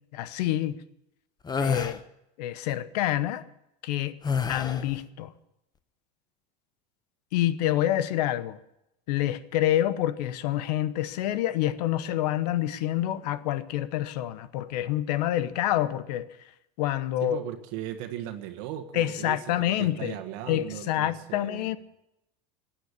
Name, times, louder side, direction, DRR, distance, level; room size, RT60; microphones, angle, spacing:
voice 1, 0.1-0.8 1.6-2.0 2.4-3.4 3.8-4.2 4.5-5.3 7.3-8.6 9.1-16.3 16.8-17.4 18.9-20.2 20.5-21.8, left 13 dB, 90° left, 1.0 m, -27 dB
sound 1, 1.5-2.0 4.2-4.9, left 5 dB, 20° left, 0.9 m, -28 dB
voice 2, 17.2-21.6, right 11 dB, 75° right, 1.5 m, -38 dB
16.5 x 9.2 x 9.7 m
supercardioid pair, 120°, 20 cm